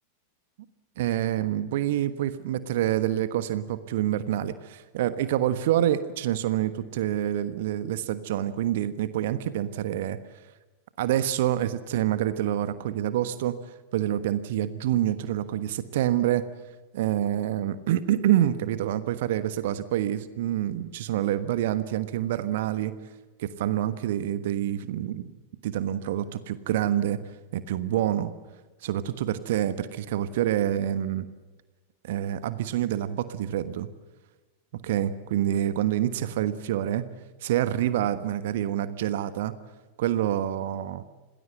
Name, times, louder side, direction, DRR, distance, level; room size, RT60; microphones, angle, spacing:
voice 1, 1.0-10.2 11.0-13.5 13.9-16.4 16.9-22.9 23.4-25.3 25.6-27.2 27.5-28.3 28.8-31.3 32.0-33.9 34.7-37.0 37.4-39.5 40.0-41.0, right 12 dB, 55° right, 13 dB, 1.3 m, -27 dB
27.5 x 19.0 x 7.9 m, 1.2 s
figure-of-eight pair, 90°, 0 cm